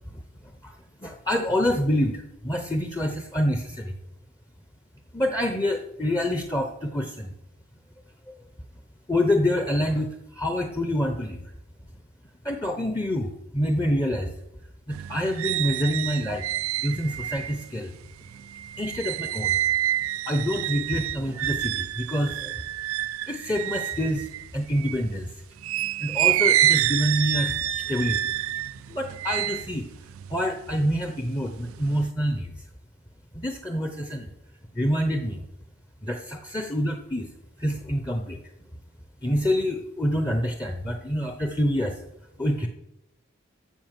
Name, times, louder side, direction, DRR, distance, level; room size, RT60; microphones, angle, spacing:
voice 1, 1.0-4.0 5.1-7.3 9.1-11.4 12.4-14.3 14.9-16.4 16.8-17.9 18.8-19.6 20.3-22.6 23.3-25.4 26.0-28.2 28.9-29.9 30.3-32.5 33.3-34.3 34.7-35.5 36.0-37.3 37.6-38.4 39.2-42.0 42.4-42.7, equal, 15° left, 4 dB, 0.7 m, -27 dB
sound 1, 14.9-25.1 25.6-31.1 31.5-32.1, right 13 dB, 80° right, 0.3 m, -28 dB
12.5 x 5.0 x 7.5 m, 0.86 s
head